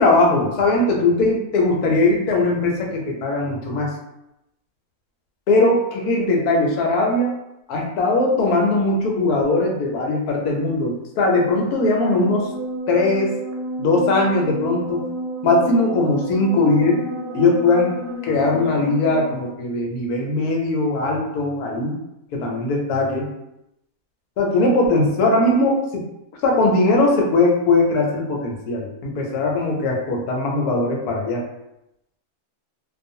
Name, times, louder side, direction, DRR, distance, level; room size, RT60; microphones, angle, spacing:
voice 1, 0.0-3.9 5.5-7.3 7.7-12.5 12.9-13.3 13.8-15.0 15.4-17.0 17.3-18.0 18.2-22.0 22.3-23.3 24.4-26.0 26.4-31.4, left 2 dB, 85° left, 0 dB, 1.2 m, -19 dB
sound 1, 11.2-19.5, right 1 dB, 85° right, 1.1 m, -31 dB
2.5 x 2.4 x 2.6 m, 0.87 s
omnidirectional pair, 1.6 m